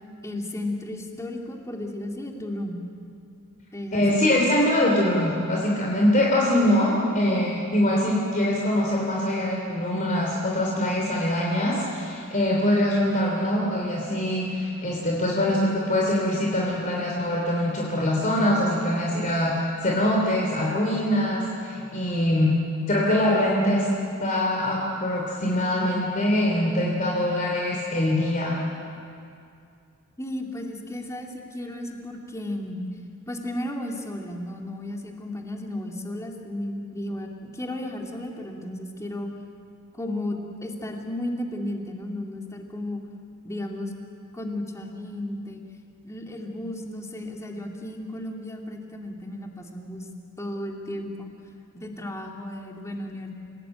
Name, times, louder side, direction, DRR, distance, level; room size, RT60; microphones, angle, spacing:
voice 1, 0.2-2.8 3.7-4.2 30.2-32.8 33.3-39.3 39.9-43.0 43.4-43.9 44.3-45.6 46.0-50.1 50.4-51.3 51.7-53.3, left 1 dB, 15° left, 1 dB, 2.6 m, -34 dB
voice 2, 3.9-22.5 22.9-23.8 24.2-28.5, left 1 dB, 40° left, -3 dB, 3.3 m, -23 dB
29.0 x 17.5 x 9.1 m, 2.4 s
head